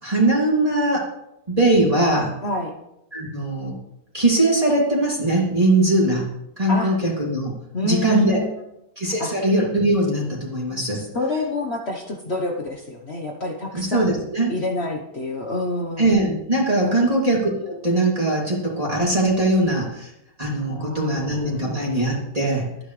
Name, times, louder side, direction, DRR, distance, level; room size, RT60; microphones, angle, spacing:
voice 1, 0.0-1.1 1.5-2.3 3.1-3.7 4.1-6.3 6.6-7.5 7.8-8.4 9.0-11.0 13.7-14.5 16.0-20.1 20.4-22.6, right 1 dB, 25° right, -5 dB, 3.0 m, -21 dB
voice 2, 2.4-2.7 6.7-7.0 7.7-8.6 9.2-9.3 10.9-14.1 14.5-16.1 16.8-17.2 20.6-21.9, left 2 dB, 45° left, 1 dB, 1.4 m, -28 dB
23.5 x 9.7 x 3.3 m, 0.85 s
omnidirectional pair, 1.6 m